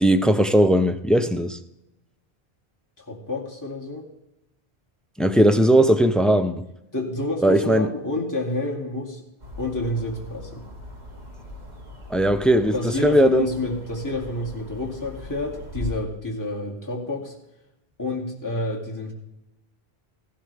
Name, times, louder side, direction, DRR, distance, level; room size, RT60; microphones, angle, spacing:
voice 1, 0.0-1.6 5.2-6.7 7.4-7.9 12.1-12.7 13.0-13.5, right 1 dB, ahead, 0.4 m, -18 dB
voice 2, 3.0-4.1 6.9-9.2 9.6-10.6 12.7-17.3 18.0-19.1, left 2 dB, 15° left, 2.5 m, -29 dB
sound 1, 9.4-16.0, left 2 dB, 45° right, 2.4 m, -39 dB
16.0 x 11.5 x 3.4 m
omnidirectional pair, 1.1 m